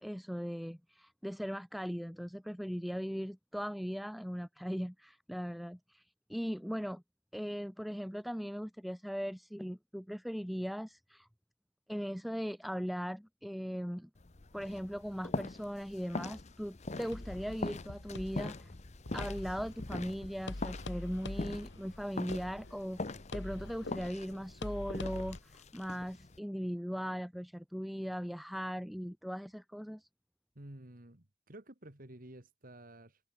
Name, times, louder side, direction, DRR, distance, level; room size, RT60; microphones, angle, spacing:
voice 1, 0.0-7.0 7.3-11.3 11.9-14.1 14.5-18.7 19.1-23.0 23.3-30.1, equal, ahead, 1.1 m, -39 dB
sound 1, 14.2-26.4, left 2 dB, 35° left, 0.9 m, -43 dB
sound 2, 17.1-25.4, left 2 dB, 65° left, 1.6 m, -45 dB
voice 2, 30.6-33.2, right 1 dB, 45° right, 2.3 m, -52 dB
open air
head